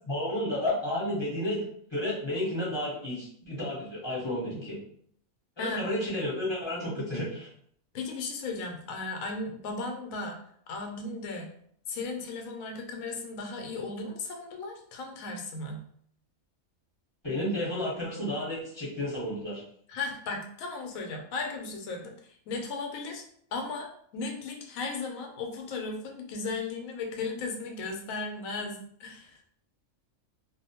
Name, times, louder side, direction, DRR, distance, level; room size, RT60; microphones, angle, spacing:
voice 1, 0.1-1.6 1.9-4.8 5.6-7.5 17.2-19.6, left 1 dB, 20° left, -8 dB, 0.9 m, -31 dB
voice 2, 5.6-5.9 7.9-10.4 10.7-11.5 11.9-15.8 19.9-23.2 23.5-29.4, left 3 dB, 75° left, 2 dB, 1.0 m, -36 dB
2.5 x 2.1 x 2.7 m, 0.63 s
omnidirectional pair, 1.5 m